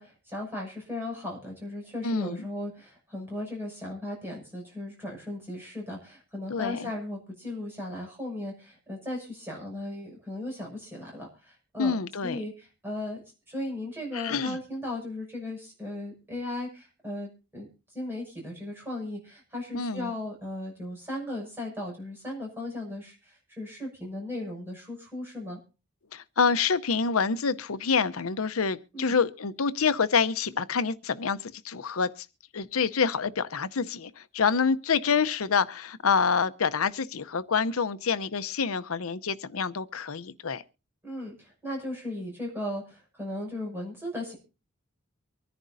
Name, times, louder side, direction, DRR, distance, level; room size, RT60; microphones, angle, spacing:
voice 1, 0.0-11.9 12.2-13.2 13.5-17.7 17.9-25.6 28.9-29.2 41.0-44.4, left 1 dB, 10° right, 6.3 m, -36 dB
voice 2, 2.0-2.4 6.5-6.9 11.8-12.4 14.1-14.6 19.7-20.1 26.1-32.1 32.5-40.6, left 5 dB, 90° left, 0.7 m, -27 dB
24.5 x 10.5 x 2.7 m
head